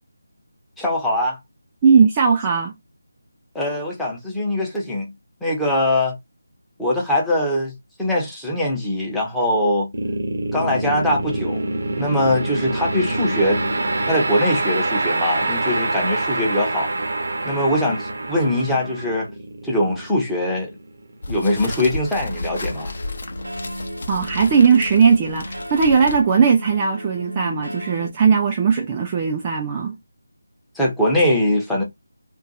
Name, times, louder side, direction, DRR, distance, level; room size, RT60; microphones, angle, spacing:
voice 1, 0.8-1.4 3.5-5.1 5.4-6.1 6.8-9.9 10.5-11.6 11.9-13.6 14.1-16.9 17.4-19.3 19.6-20.7 21.3-22.9 30.7-31.8, left 1 dB, 5° left, 0.9 m, -22 dB
voice 2, 1.8-2.7 24.1-30.0, right 6 dB, 20° right, 0.4 m, -18 dB
sound 1, 9.9-21.1, right 2 dB, 55° right, 0.8 m, -25 dB
sound 2, 21.2-26.5, left 2 dB, 50° left, 0.7 m, -33 dB
sound 3, 21.6-28.1, equal, 90° right, 0.7 m, -35 dB
2.5 x 2.2 x 4.0 m
figure-of-eight pair, 165°, 0 cm